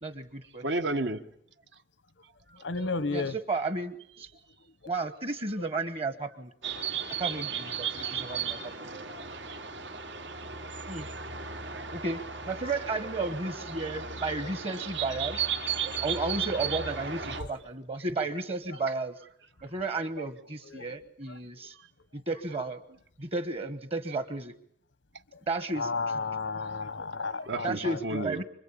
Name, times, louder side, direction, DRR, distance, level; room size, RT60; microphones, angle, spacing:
voice 1, 0.0-0.6 3.1-4.3 4.9-6.5 7.2-8.7 10.9-11.1 11.9-12.2 12.5-15.4 16.0-19.1 19.6-21.7 22.1-22.8 23.2-24.5 25.5-25.9 27.6-28.4, right 3 dB, 35° right, 11 dB, 1.2 m, -33 dB
voice 2, 0.6-1.2 2.5-2.6 9.5-9.6 11.1-11.9 17.2-17.4 27.4-28.4, right 2 dB, 70° right, 8 dB, 1.5 m, -33 dB
voice 3, 2.6-3.3 8.3-8.7 9.1-9.3 17.4-17.5 20.6-20.8 25.8-28.2, left 4 dB, 90° left, 16 dB, 1.1 m, -33 dB
sound 1, 6.6-17.4, right 6 dB, 85° right, 3.4 m, -35 dB
26.0 x 24.5 x 8.7 m, 0.68 s
head